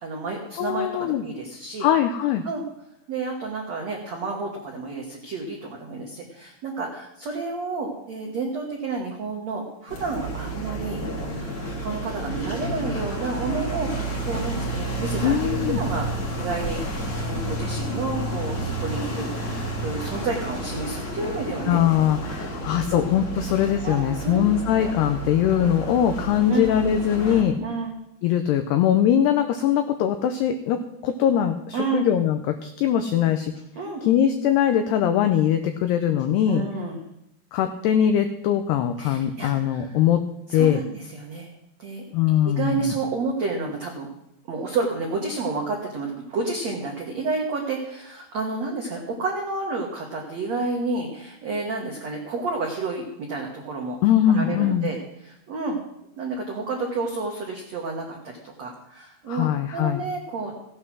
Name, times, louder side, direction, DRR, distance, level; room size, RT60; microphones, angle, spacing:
voice 1, 0.0-1.9 2.4-2.6 3.1-11.0 11.4-15.4 15.7-16.1 16.4-21.8 22.3-22.4 22.9-23.0 23.4-23.5 23.8-24.4 26.5-26.6 27.6-28.0 31.7-32.0 33.7-34.0 36.5-37.0 39.0-40.0 40.5-41.5 41.8-42.0 42.4-44.1 44.5-54.0 54.3-55.8 56.2-60.5, right 3 dB, 85° right, 0 dB, 1.5 m, -30 dB
voice 2, 0.6-1.2 1.8-2.5 15.2-15.8 21.7-27.6 28.2-33.5 34.0-36.6 37.5-40.2 40.5-40.8 42.1-42.9 54.0-54.9 59.3-60.0, left 10 dB, 85° left, 8 dB, 2.3 m, -21 dB
sound 1, 9.9-27.4, right 1 dB, 55° left, 1.2 m, -30 dB
16.5 x 8.7 x 6.1 m, 0.83 s
omnidirectional pair, 5.6 m